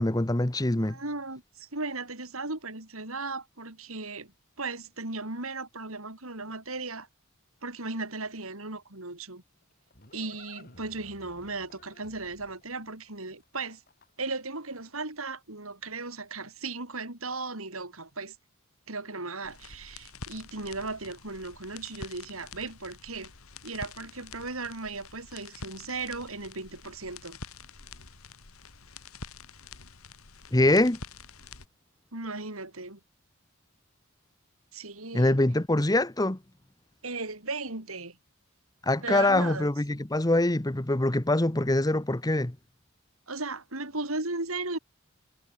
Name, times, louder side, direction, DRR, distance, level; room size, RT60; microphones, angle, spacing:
voice 1, 0.0-1.0 30.5-31.0 35.1-36.4 38.8-42.6, left 1 dB, 20° left, 1.0 m, -24 dB
voice 2, 0.8-4.3 4.6-7.1 7.6-9.4 10.1-13.8 14.2-18.4 18.9-23.3 23.6-27.4 32.1-33.0 34.7-35.4 37.0-38.2 39.0-39.7 43.3-44.8, right 3 dB, 80° right, 5.5 m, -36 dB
Livestock farm animals working animals, 9.3-14.4, left 2 dB, 45° left, 3.9 m, -55 dB
sound 1, 19.4-31.7, left 4 dB, 85° left, 2.7 m, -47 dB
head